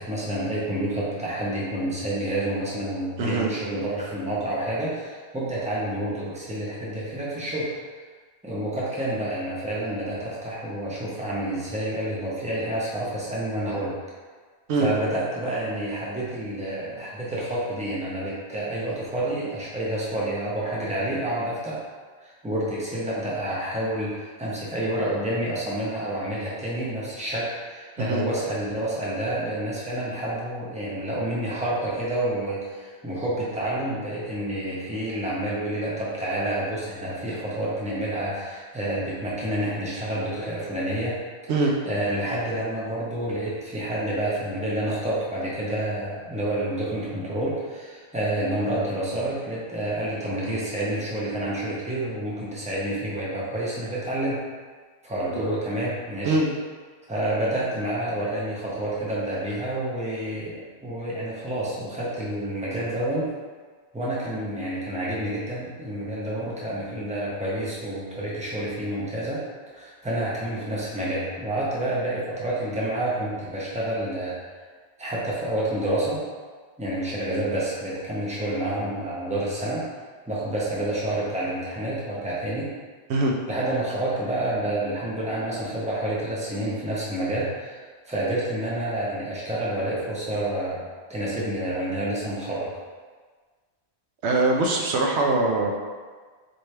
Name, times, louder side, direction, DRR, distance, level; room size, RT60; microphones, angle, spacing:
voice 1, 0.0-7.7 8.4-13.9 14.8-21.8 22.2-41.2 41.4-54.4 55.0-56.4 57.1-63.3 63.9-69.4 69.7-74.4 75.0-76.2 76.8-79.8 80.3-82.7 83.5-90.8 91.1-92.7, right 1 dB, 5° right, -7 dB, 0.8 m, -29 dB
voice 2, 3.2-3.5 14.7-14.9 28.0-28.2 41.5-41.7 55.3-55.4 56.2-56.5 83.1-83.3 94.2-95.7, right 2 dB, 80° right, 0 dB, 0.9 m, -22 dB
4.4 x 3.2 x 3.2 m, 1.5 s
omnidirectional pair, 1.1 m